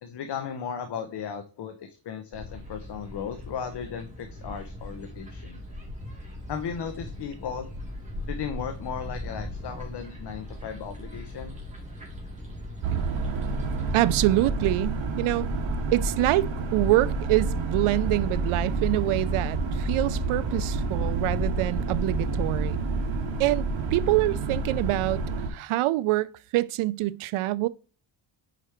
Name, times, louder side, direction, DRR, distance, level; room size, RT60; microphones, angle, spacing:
voice 1, 0.0-5.6 6.5-7.7 8.3-11.6, left 7 dB, 55° left, 0.8 m, -36 dB
sound 1, 2.3-14.2, left 1 dB, 15° right, 2.4 m, -39 dB
sound 2, 12.8-25.5, right 3 dB, 65° right, 1.5 m, -29 dB
voice 2, 13.9-15.5 15.9-22.8 23.4-27.7, right 17 dB, 80° right, 0.5 m, -25 dB
5.0 x 4.9 x 4.4 m
cardioid pair, 110°, 49 cm